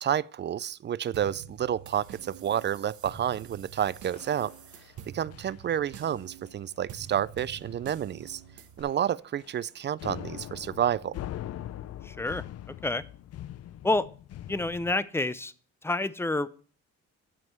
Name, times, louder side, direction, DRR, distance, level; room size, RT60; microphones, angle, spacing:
voice 1, 0.0-4.5 5.1-8.4 8.8-11.2, right 10 dB, 35° right, 0.4 m, -30 dB
sound 1, 1.1-8.8, right 8 dB, 75° right, 1.2 m, -47 dB
sound 2, 4.1-5.0 5.3-5.6 5.9-6.1 6.5-6.7 7.0-7.1 7.6-7.9 8.2-8.4 8.8-9.7 10.0-14.9, left 12 dB, 55° left, 0.5 m, -42 dB
voice 2, 12.0-12.4 12.8-13.0 13.8-14.1 14.5-15.5 15.8-16.5, left 2 dB, 10° left, 0.6 m, -28 dB
11.0 x 5.3 x 5.8 m
cardioid pair, 90°, 30 cm